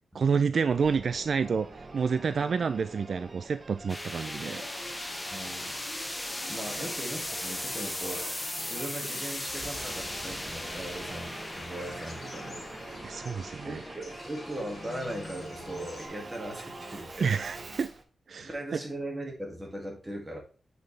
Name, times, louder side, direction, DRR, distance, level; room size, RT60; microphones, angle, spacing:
voice 1, 0.1-1.7 1.9-4.6 6.8-6.9 13.0-13.8 17.2-17.9 18.3-18.8, right 5 dB, 65° right, 0.3 m, -29 dB
Singing / Musical instrument, 0.7-18.0, right 3 dB, 40° right, 1.0 m, -46 dB
sound 1, 3.9-15.0, left 1 dB, 15° left, 1.0 m, -38 dB
sound 2, 4.2-16.1, left 2 dB, 45° left, 3.4 m, -46 dB
voice 2, 5.3-5.8 6.5-12.7 13.6-17.3 18.4-20.4, right 1 dB, 15° right, 2.3 m, -39 dB
8.1 x 5.3 x 3.3 m
wide cardioid pair, 105°, 0 cm